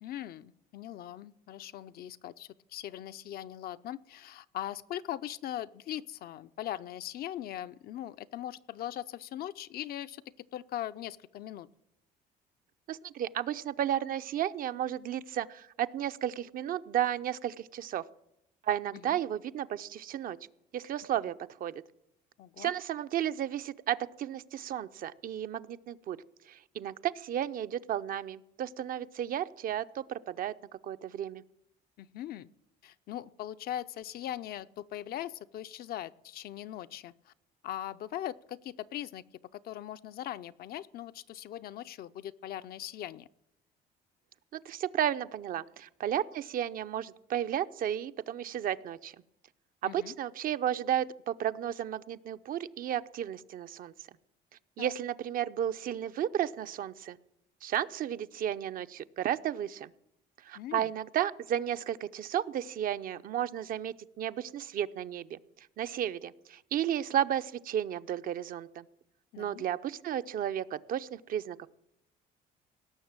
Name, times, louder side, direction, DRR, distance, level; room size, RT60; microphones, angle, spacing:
voice 1, 0.0-10.2 10.5-11.7 19.0-19.2 22.4-22.7 32.0-32.5 32.8-37.3 37.6-39.2 39.5-43.3 49.8-50.1 54.8-54.9 60.5-60.9 69.3-69.6, left 12 dB, 65° left, 12 dB, 0.6 m, -40 dB
voice 2, 12.9-18.0 18.6-20.4 20.7-21.3 21.6-21.8 22.6-26.2 26.5-30.5 30.8-31.4 44.5-49.2 49.8-53.9 54.8-57.2 57.6-59.9 60.4-68.8 69.4-71.7, right 10 dB, 55° right, 12 dB, 0.6 m, -33 dB
17.5 x 6.7 x 8.8 m, 0.81 s
cardioid pair, 110°, 17 cm